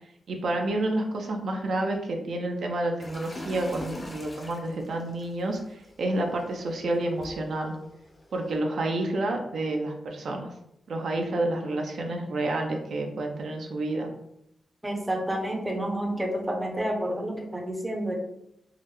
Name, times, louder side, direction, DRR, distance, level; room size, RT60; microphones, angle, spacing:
voice 1, 0.3-7.7 8.3-10.5 10.9-14.1, right 2 dB, 70° right, 2 dB, 0.5 m, -29 dB
sound 1, 3.0-8.6, left 1 dB, 30° left, 0.5 m, -44 dB
voice 2, 14.8-18.2, right 1 dB, 15° right, 0 dB, 0.6 m, -29 dB
3.5 x 2.1 x 3.0 m, 0.79 s
wide cardioid pair, 130°, 0 cm